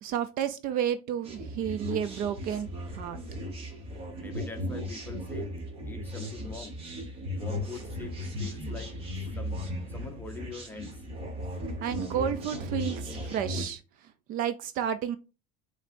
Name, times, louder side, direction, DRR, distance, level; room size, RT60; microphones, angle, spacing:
voice 1, 0.0-2.7 3.0-3.2 11.8-13.8 14.3-15.2, right 9 dB, 50° right, 0.5 m, -31 dB
sound 1, 1.2-13.6, left 1 dB, 30° right, 1.4 m, -36 dB
voice 2, 4.2-5.5 5.9-6.7 7.3-8.9 9.3-9.6 9.9-11.0, left 4 dB, 10° left, 0.8 m, -43 dB
5.5 x 3.2 x 2.6 m
cardioid pair, 140°, 18 cm